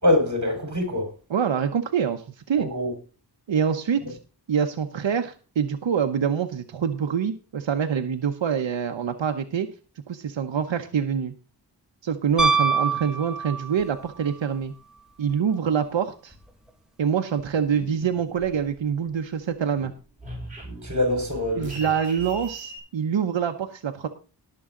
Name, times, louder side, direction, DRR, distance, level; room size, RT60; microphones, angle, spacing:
voice 1, 0.0-1.1 2.6-2.9 4.0-4.1 20.8-21.9, left 1 dB, 40° right, 4.6 m, -24 dB
voice 2, 1.3-2.7 3.5-4.2 4.5-9.7 10.1-11.3 12.0-14.7 15.2-16.3 17.0-19.9 21.6-24.1, right 7 dB, 90° right, 1.0 m, -25 dB
Piano, 12.4-14.0 16.3-16.4, right 4 dB, ahead, 1.8 m, -23 dB
sound 1, 17.7-19.1 19.4-22.8, right 1 dB, 15° right, 6.4 m, -40 dB
18.5 x 7.0 x 3.8 m
wide cardioid pair, 105°, 44 cm